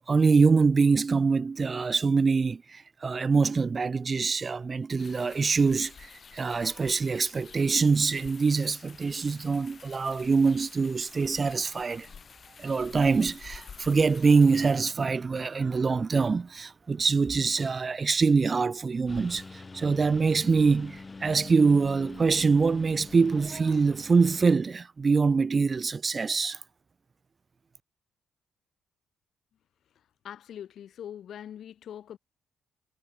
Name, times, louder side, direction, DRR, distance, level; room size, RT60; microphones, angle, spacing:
voice 1, 0.1-12.1 12.6-26.6, right 4 dB, 35° right, 0.3 m, -24 dB
sound 1, 5.0-14.8, left 6 dB, 45° left, 5.9 m, -50 dB
Engine, 19.1-24.5, left 3 dB, 25° left, 1.3 m, -44 dB
voice 2, 30.2-32.2, left 10 dB, 65° left, 2.4 m, -42 dB
cardioid pair, 90°, 0 cm